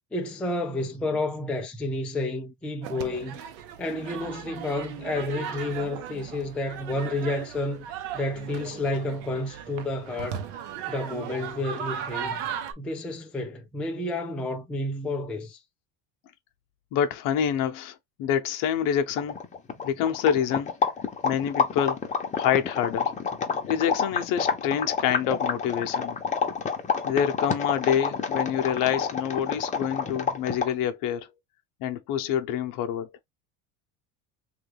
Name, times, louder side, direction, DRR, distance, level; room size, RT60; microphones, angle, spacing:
voice 1, 0.1-3.4 3.8-7.9 8.1-10.4 10.9-12.4 12.8-15.6, left 2 dB, 5° left, 0.3 m, -30 dB
sound 1, 2.8-12.7, right 8 dB, 75° right, 0.8 m, -37 dB
voice 2, 16.9-19.4 19.8-20.7 21.2-22.0 22.3-23.1 23.6-26.2 27.0-31.3 31.8-33.1, left 9 dB, 60° left, 0.7 m, -27 dB
sound 2, 18.8-18.9 19.1-30.8, left 6 dB, 20° left, 0.8 m, -28 dB
3.2 x 2.4 x 3.2 m
cardioid pair, 140°, 37 cm